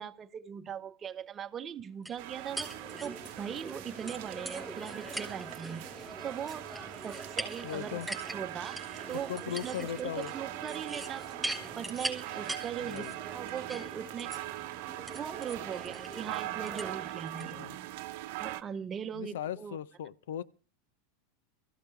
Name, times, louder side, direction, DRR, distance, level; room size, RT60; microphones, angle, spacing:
voice 1, 0.0-2.7 3.0-5.9 6.2-11.4 11.8-13.0 13.3-14.3 15.1-17.7 18.4-19.8, right 8 dB, 30° right, 0.9 m, -40 dB
sound 1, 2.0-17.5, right 1 dB, 5° right, 3.8 m, -42 dB
sound 2, 2.2-18.6, right 17 dB, 65° right, 0.8 m, -42 dB
voice 2, 7.6-8.1 9.3-10.3 12.8-13.1 17.4-17.8 19.1-20.4, left 10 dB, 75° left, 0.7 m, -38 dB
22.5 x 14.5 x 3.3 m
hypercardioid pair, 95°, 0 cm